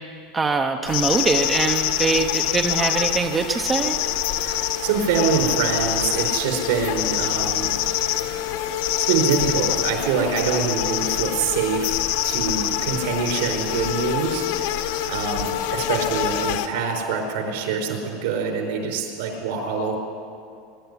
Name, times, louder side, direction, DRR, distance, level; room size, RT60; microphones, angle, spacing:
voice 1, 0.3-4.0, right 4 dB, 15° right, 5 dB, 0.7 m, -23 dB
sound 1, 0.9-16.7, left 12 dB, 65° left, 1.4 m, -25 dB
voice 2, 4.4-7.8 8.8-20.0, right 5 dB, 65° right, 2 dB, 4.8 m, -25 dB
22.5 x 12.0 x 9.8 m, 2.4 s
supercardioid pair, 170°, 0 cm